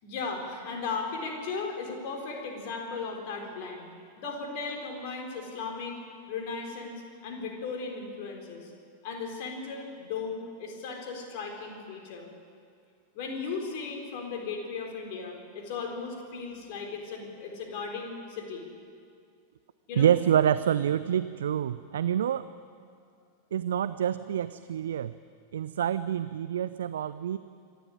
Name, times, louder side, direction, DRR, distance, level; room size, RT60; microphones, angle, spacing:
voice 1, 0.0-3.9 4.2-6.0 6.3-8.7 9.0-12.3 13.1-18.7 19.9-20.1, left 4 dB, 50° left, 2 dB, 4.2 m, -36 dB
voice 2, 20.0-22.5 23.5-25.1 25.5-27.4, right 9 dB, 65° right, 14 dB, 0.4 m, -27 dB
26.0 x 12.0 x 9.7 m, 2.3 s
figure-of-eight pair, 90°, 0 cm